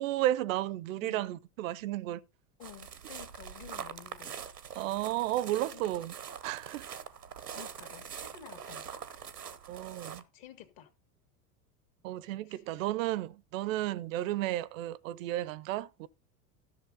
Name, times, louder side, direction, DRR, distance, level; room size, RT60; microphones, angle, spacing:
voice 1, 0.0-2.2 4.8-6.1 6.4-6.9 9.7-10.2 12.0-16.1, right 14 dB, 60° right, 0.6 m, -33 dB
voice 2, 2.6-4.4 5.7-6.0 7.5-9.0 10.3-10.9 12.5-12.6, left 10 dB, 50° left, 1.9 m, -51 dB
sound 1, 2.6-10.2, right 7 dB, 90° right, 0.9 m, -44 dB
13.5 x 6.5 x 3.9 m
figure-of-eight pair, 80°, 46 cm